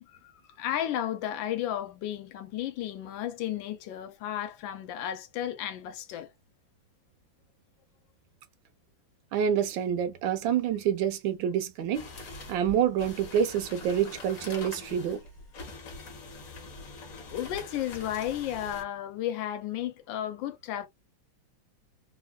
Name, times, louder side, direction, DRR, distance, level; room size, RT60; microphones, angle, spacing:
voice 1, 0.0-6.3 16.0-16.1 17.3-20.9, left 11 dB, 80° left, 1.3 m, -33 dB
voice 2, 9.3-12.1 12.5-15.2, right 9 dB, 80° right, 1.4 m, -27 dB
sound 1, 11.9-18.8, left 2 dB, 50° left, 1.2 m, -44 dB
3.4 x 2.3 x 2.2 m
omnidirectional pair, 2.1 m